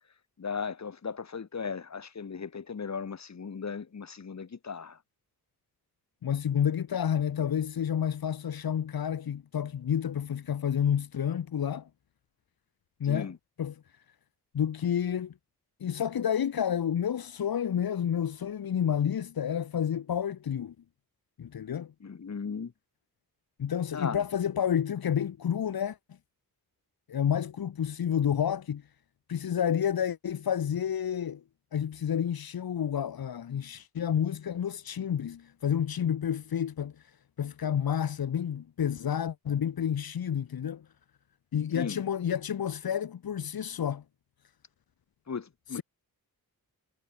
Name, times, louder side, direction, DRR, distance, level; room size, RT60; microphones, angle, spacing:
voice 1, 0.4-5.0 13.0-13.4 22.0-22.7 23.9-24.2 41.7-42.0 45.3-45.8, left 5 dB, 45° left, 4.4 m, -37 dB
voice 2, 6.2-11.9 13.0-13.3 13.6-13.8 14.5-15.3 15.8-20.7 21.4-21.9 23.6-26.0 27.1-28.8 29.3-31.4 31.7-36.9 37.4-40.8 41.5-44.0 45.7-45.8, left 9 dB, 70° left, 2.5 m, -30 dB
wide cardioid pair, 105°, 37 cm